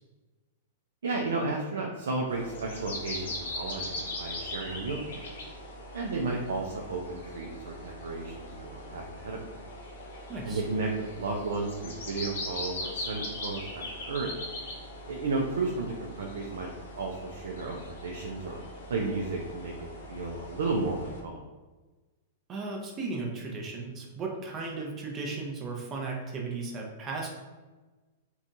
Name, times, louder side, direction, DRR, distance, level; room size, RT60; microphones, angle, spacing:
voice 1, 1.0-5.2 5.9-9.6 10.5-14.3 15.1-16.7 17.0-18.6 18.9-21.4, right 3 dB, 80° right, 0 dB, 0.3 m, -33 dB
sound 1, 2.3-21.2, left 1 dB, 75° left, 0.8 m, -41 dB
voice 2, 10.3-10.6 22.5-27.3, right 3 dB, 30° right, -1 dB, 0.5 m, -35 dB
2.7 x 2.2 x 2.5 m, 1.2 s
hypercardioid pair, 120°, 0 cm